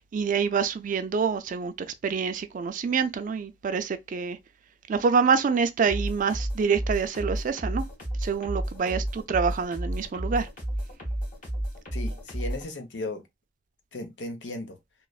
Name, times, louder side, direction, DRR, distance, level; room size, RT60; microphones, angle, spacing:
voice 1, 0.1-1.7 2.0-4.4 4.9-7.8 8.2-10.5, right 5 dB, 45° right, 0.4 m, -26 dB
sound 1, 5.9-12.7, right 1 dB, 50° left, 1.3 m, -32 dB
voice 2, 11.9-13.2 13.9-14.8, left 2 dB, 80° left, 0.7 m, -36 dB
3.1 x 2.1 x 2.3 m
head